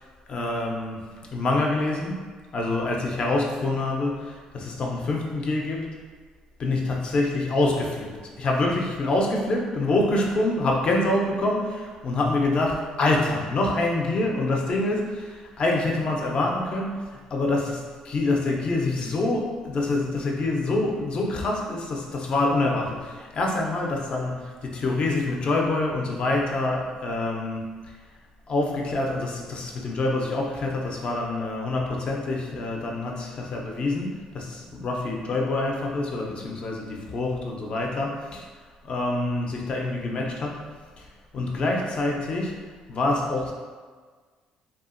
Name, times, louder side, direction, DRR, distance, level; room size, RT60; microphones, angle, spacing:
voice 1, 0.3-1.0 1.3-2.2 2.5-6.0 6.6-27.9 28.5-38.5 38.8-40.6 41.0-41.1 41.3-42.6 42.9-43.5, left 2 dB, 45° left, 0 dB, 0.5 m, -26 dB
2.7 x 2.4 x 2.5 m, 1.5 s
cardioid pair, 95°, 2 cm